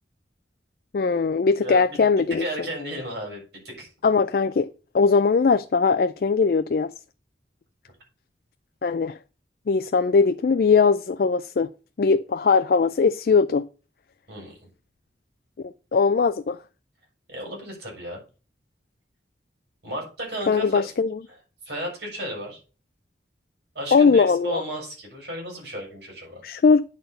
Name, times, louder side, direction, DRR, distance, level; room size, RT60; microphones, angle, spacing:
voice 1, 0.9-2.4 4.0-4.7 4.9-6.9 8.8-9.2 9.7-11.7 12.0-13.6 15.6-16.6 20.5-21.2 23.9-24.6 26.4-26.8, left 5 dB, 55° left, 0.3 m, -20 dB
voice 2, 1.6-2.0 2.4-3.9 14.3-14.7 17.3-18.2 19.8-20.9 21.6-22.6 23.7-26.4, equal, 65° right, 6.1 m, -34 dB
9.4 x 4.2 x 6.6 m
head